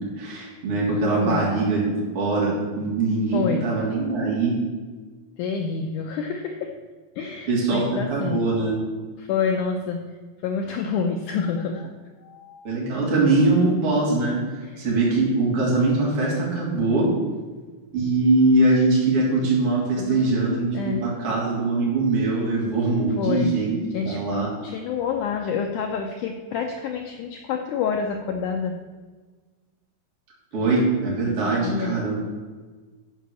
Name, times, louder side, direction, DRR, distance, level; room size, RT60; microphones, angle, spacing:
voice 1, 0.2-1.8 2.1-4.6 7.5-8.8 12.6-14.4 14.8-17.1 17.9-23.8 24.0-24.5 30.5-32.1, right 2 dB, 40° right, -5 dB, 3.8 m, -22 dB
voice 2, 3.3-3.7 5.4-6.7 7.2-8.4 9.2-10.1 10.4-11.9 12.2-12.8 14.6-14.9 20.0-20.4 20.7-21.0 23.2-23.6 23.9-28.8 31.3-31.9, left 6 dB, 80° left, 4 dB, 1.8 m, -28 dB
12.5 x 5.2 x 6.9 m, 1.4 s
omnidirectional pair, 4.4 m